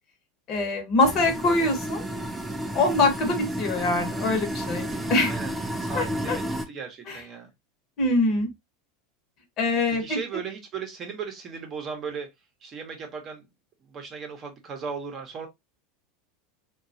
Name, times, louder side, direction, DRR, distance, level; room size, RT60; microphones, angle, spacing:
voice 1, 0.5-2.0 2.7-5.4 5.9-6.4 7.1-7.2 8.0-8.5 9.6-10.2, left 2 dB, 40° left, 1.0 m, -24 dB
sound 1, 1.0-6.7, right 1 dB, 10° right, 0.4 m, -31 dB
voice 2, 4.9-5.5 5.8-7.5 9.9-12.3 12.6-13.4 13.9-15.5, right 6 dB, 30° right, 0.8 m, -37 dB
2.9 x 2.3 x 2.6 m
supercardioid pair, 145°, 0 cm